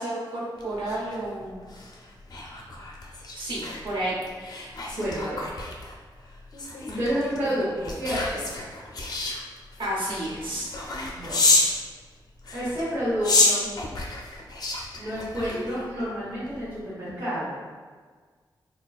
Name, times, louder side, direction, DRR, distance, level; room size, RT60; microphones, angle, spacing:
voice 1, 0.0-1.6 3.3-4.1 9.8-10.7, right 1 dB, 85° right, -5 dB, 0.9 m, -31 dB
sound 1, 0.6-11.8 12.4-16.0 16.4-16.7, left 2 dB, 55° left, 0.5 m, -29 dB
voice 2, 4.9-5.4 6.9-8.5 11.1-11.4 12.5-13.7 14.9-17.5, equal, 40° right, -12 dB, 1.1 m, -29 dB
4.1 x 2.2 x 2.3 m, 1.5 s
wide cardioid pair, 145°, 8 cm